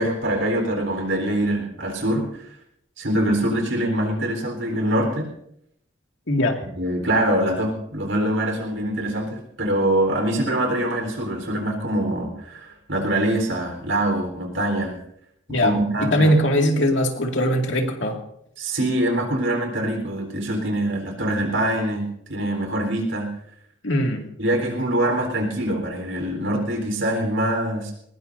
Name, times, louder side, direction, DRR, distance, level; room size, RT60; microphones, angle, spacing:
voice 1, 0.0-2.5 3.0-5.3 6.8-15.0 15.5-16.3 18.6-23.3 24.4-27.9, right 1 dB, 75° right, 3 dB, 4.1 m, -24 dB
voice 2, 6.3-6.6 15.5-15.8 16.1-18.2 23.8-24.2, equal, 70° left, 2 dB, 2.3 m, -20 dB
21.5 x 20.0 x 2.7 m, 0.73 s
head